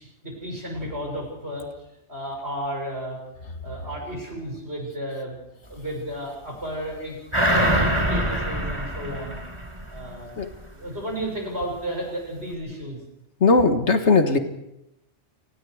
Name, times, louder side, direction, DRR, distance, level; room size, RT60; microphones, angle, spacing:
voice 1, 0.0-3.2 3.6-5.4 5.7-9.4 9.9-10.3 10.7-13.0, right 1 dB, 60° right, 0 dB, 7.2 m, -33 dB
sound 1, 7.3-10.2 10.6-10.7, equal, 25° right, 3.9 m, -24 dB
voice 2, 13.4-14.4, left 3 dB, 65° left, 7 dB, 1.9 m, -18 dB
29.5 x 19.5 x 4.9 m, 0.86 s
omnidirectional pair, 1.2 m